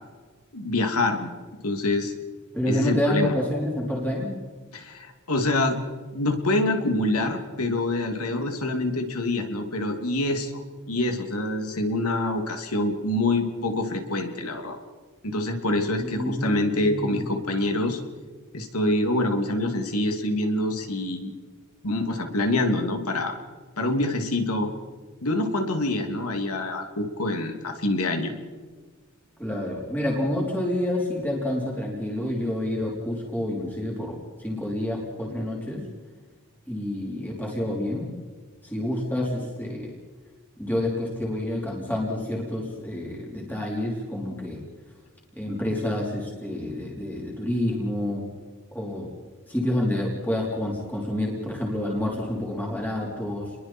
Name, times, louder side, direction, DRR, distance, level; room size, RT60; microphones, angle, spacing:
voice 1, 0.5-1.3 1.6-2.1 2.7-3.3 4.7-5.8 6.1-10.6 10.9-14.8 15.2-18.0 18.5-21.3 21.8-23.4 23.8-24.7 25.2-28.3, left 2 dB, 85° left, 5 dB, 2.7 m, -26 dB
voice 2, 2.5-4.3 16.0-17.3 29.4-35.8 36.7-38.2 38.6-40.0 40.6-44.6 45.4-48.2 48.7-49.1 49.5-53.6, left 1 dB, 10° left, -3 dB, 3.9 m, -28 dB
30.0 x 22.0 x 4.5 m, 1.4 s
head